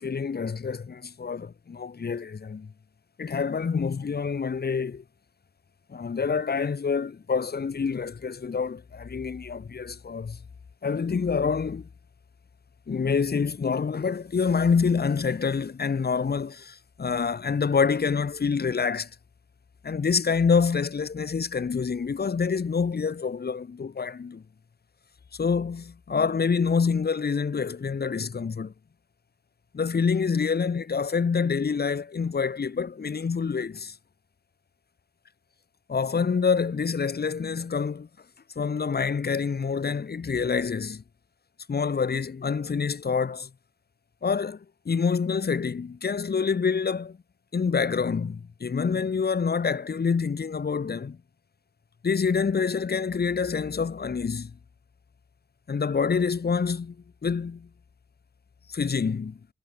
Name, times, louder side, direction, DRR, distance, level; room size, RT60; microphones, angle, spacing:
voice 1, 0.0-2.7 3.2-5.0 5.9-10.4 10.8-11.9 12.9-19.1 19.8-24.4 25.4-28.7 29.7-33.9 35.9-38.1 38.6-41.0 41.7-43.5 44.2-44.6 44.9-47.2 47.5-51.2 52.0-54.5 55.7-56.9 57.2-57.7 58.7-59.4, left 5 dB, 50° left, 2.5 m, -26 dB
wide cardioid pair, 130°, 21 cm